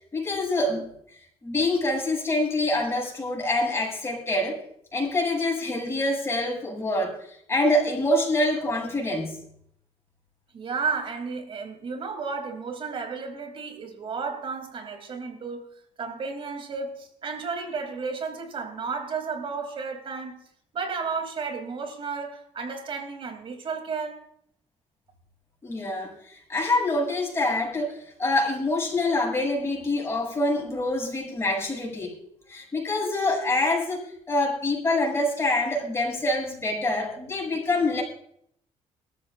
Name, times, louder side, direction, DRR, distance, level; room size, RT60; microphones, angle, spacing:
voice 1, 0.1-0.9 1.4-4.6 4.9-9.4 25.6-32.2 32.5-38.0, left 2 dB, 20° left, 6.8 m, -26 dB
voice 2, 10.5-15.7 16.0-20.4 20.7-24.2, right 5 dB, 50° right, 2.9 m, -33 dB
22.0 x 13.5 x 2.5 m
cardioid pair, 120°, 12 cm